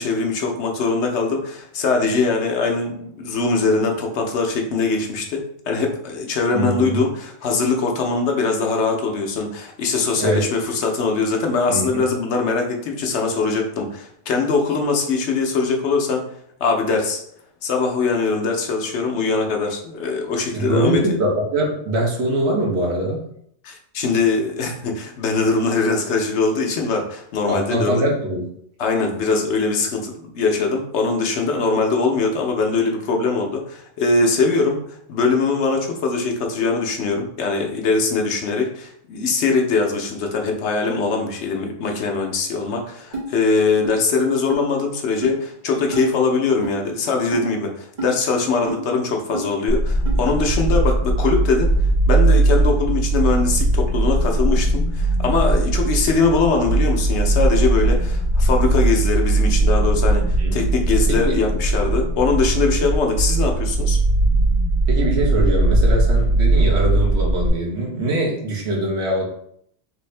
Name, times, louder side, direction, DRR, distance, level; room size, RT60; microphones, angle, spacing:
voice 1, 0.0-16.3 16.6-17.2 17.6-21.0 23.6-28.0 28.8-34.8 35.1-51.7 52.1-64.0, left 4 dB, 80° left, 2 dB, 1.0 m, -22 dB
voice 2, 6.5-7.0 10.2-10.4 11.7-12.0 20.5-23.2 27.4-28.5 60.4-60.7 61.1-61.4 64.9-69.3, right 1 dB, 70° right, -2 dB, 1.2 m, -23 dB
sound 1, 43.1-43.3 43.8-43.9 44.5-44.6 45.2-45.4 45.9-46.1 46.6-46.8 47.3-47.5 48.0-48.1 48.7-48.8 49.3-49.4 50.1-50.2, right 2 dB, 45° right, 1.3 m, -29 dB
sound 2, 49.7-67.5, right 2 dB, 50° left, 0.5 m, -19 dB
3.4 x 2.6 x 3.2 m, 0.69 s
omnidirectional pair, 1.2 m